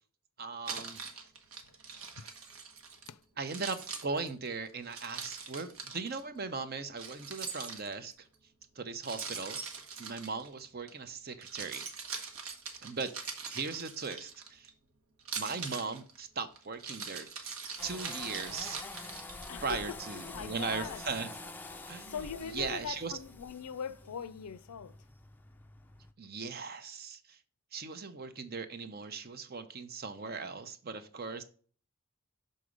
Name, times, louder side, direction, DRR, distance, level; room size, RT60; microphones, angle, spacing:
voice 1, 0.4-1.0 3.4-8.3 8.8-9.7 10.0-11.8 12.8-13.1 13.5-14.7 15.4-17.3 17.8-18.8 19.6-21.3 21.9-22.2 22.5-23.1 26.2-27.4 27.7-31.4, right 4 dB, 45° right, 0.7 m, -38 dB
Keys jangling, 0.7-3.1 3.4-6.2 7.0-8.2 9.0-10.9 11.3-14.7 15.2-19.7, right 5 dB, 70° right, 1.1 m, -42 dB
sound 1, 17.8-26.1, left 2 dB, 10° left, 0.4 m, -47 dB
voice 2, 19.5-21.0 22.0-25.0, left 7 dB, 90° left, 0.4 m, -41 dB
6.5 x 3.9 x 5.0 m
head